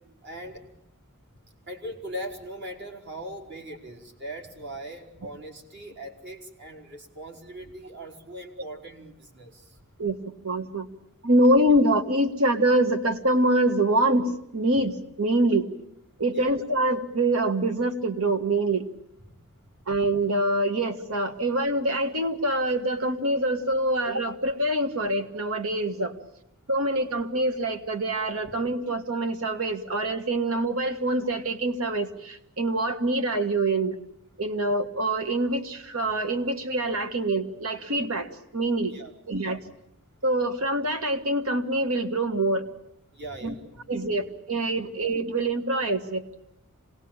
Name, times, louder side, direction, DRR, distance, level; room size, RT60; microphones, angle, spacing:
voice 1, 0.2-0.6 1.7-9.8 16.3-16.5 38.9-39.1 43.1-43.6 44.8-44.9, right 1 dB, 55° right, 2 dB, 4.2 m, -40 dB
voice 2, 10.4-10.9 11.2-15.7 16.2-18.9 19.9-26.2 26.7-34.0 34.4-38.9 39.3-39.6 40.2-42.7 43.4-43.5 43.9-46.2, right 1 dB, 75° right, 8 dB, 1.8 m, -25 dB
26.5 x 19.5 x 9.0 m, 0.83 s
head